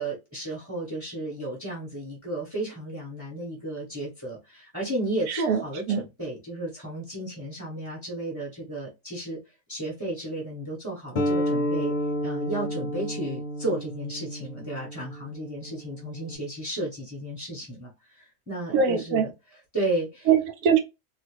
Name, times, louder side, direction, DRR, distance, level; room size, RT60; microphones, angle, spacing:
voice 1, 0.0-9.4 9.7-11.9 12.2-19.3 19.7-20.3, right 1 dB, 10° right, 1.3 m, -33 dB
voice 2, 5.3-5.6 5.9-6.0 18.7-19.3 20.3-20.8, right 7 dB, 80° right, 1.2 m, -22 dB
sound 1, 11.2-16.4, equal, 45° left, 0.7 m, -30 dB
2.8 x 2.4 x 3.3 m
omnidirectional pair, 1.5 m